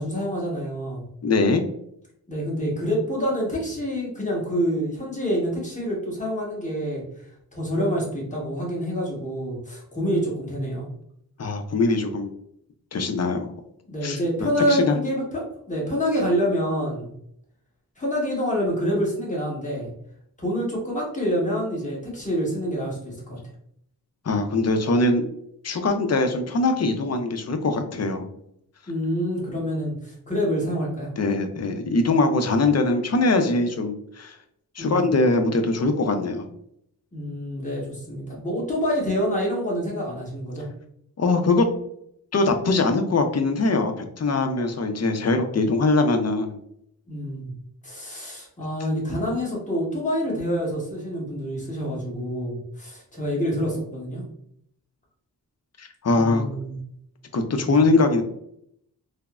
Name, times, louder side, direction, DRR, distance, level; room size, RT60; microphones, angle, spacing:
voice 1, 0.0-1.0 2.3-7.0 7.5-10.9 13.9-17.1 18.0-19.9 20.4-23.4 28.9-31.1 34.8-35.1 37.1-40.7 47.1-47.5 47.8-54.2 56.1-56.8 57.6-57.7, equal, 20° left, -4 dB, 1.2 m, -27 dB
voice 2, 1.2-1.6 11.4-12.3 12.9-13.5 14.0-14.2 14.7-15.0 24.3-25.2 25.6-28.3 31.2-34.4 34.8-36.5 41.2-41.7 42.3-46.6 55.8-56.4 57.3-58.2, left 3 dB, 40° left, 6 dB, 0.5 m, -22 dB
3.3 x 2.0 x 2.3 m, 0.72 s
cardioid pair, 50°, 40 cm